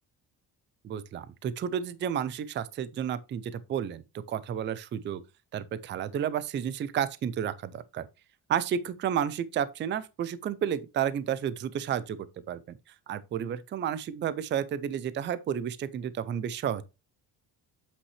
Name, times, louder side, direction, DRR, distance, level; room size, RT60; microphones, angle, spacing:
voice 1, 0.8-4.0 4.3-5.2 5.5-8.1 8.5-12.8 13.1-16.8, right 9 dB, 30° right, 0.4 m, -31 dB
8.2 x 5.6 x 3.2 m
cardioid pair, 170°, 38 cm